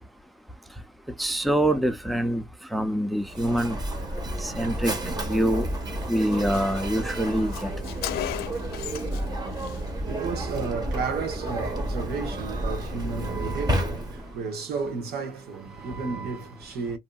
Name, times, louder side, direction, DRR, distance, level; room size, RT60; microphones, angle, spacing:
voice 1, 1.2-2.4 2.7-3.8 4.4-4.9 5.2-5.7 6.1-7.7, right 1 dB, ahead, 0.5 m, -25 dB
Mechanisms, 3.2-14.4, right 1 dB, 25° right, 1.0 m, -31 dB
sound 1, 5.1-6.4 7.6-11.9 13.2-13.6, right 6 dB, 55° right, 0.7 m, -40 dB
Car, 5.6-5.7 6.0-6.1 6.3-9.3 9.5-9.8, left 13 dB, 85° left, 0.4 m, -36 dB
voice 2, 9.3-17.0, right 5 dB, 80° right, 1.0 m, -33 dB
2.7 x 2.6 x 2.2 m
cardioid pair, 85°, 16 cm